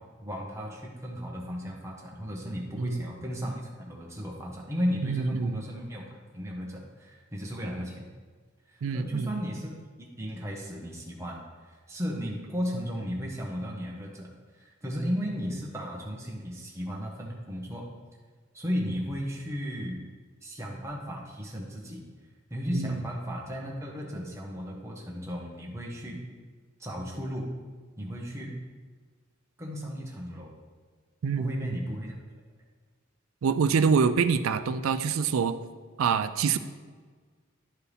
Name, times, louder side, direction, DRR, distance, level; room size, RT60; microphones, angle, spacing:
voice 1, 0.2-8.1 8.7-9.7 10.1-14.3 14.6-17.9 18.5-20.0 20.4-22.0 22.5-26.3 26.8-27.6 28.0-28.6 29.6-30.5 31.4-32.2, equal, 15° right, -2 dB, 1.1 m, -35 dB
voice 2, 5.0-5.6 8.8-9.4 22.7-23.0 31.2-31.8 33.4-35.6 36.0-36.6, right 5 dB, 80° right, 12 dB, 0.4 m, -26 dB
11.0 x 4.5 x 3.4 m, 1.5 s
head